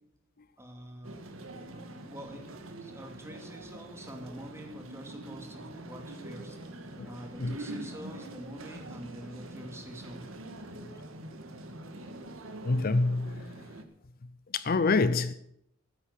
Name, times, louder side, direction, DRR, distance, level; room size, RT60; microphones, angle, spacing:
voice 1, 0.6-1.3 2.1-2.5 2.8-6.6 7.0-10.3, equal, 15° right, 2.6 m, -45 dB
sound 1, 1.0-13.8, right 1 dB, 85° right, 1.8 m, -44 dB
voice 2, 12.6-13.5 14.5-15.3, left 3 dB, 45° left, 0.6 m, -26 dB
13.5 x 10.0 x 7.1 m
head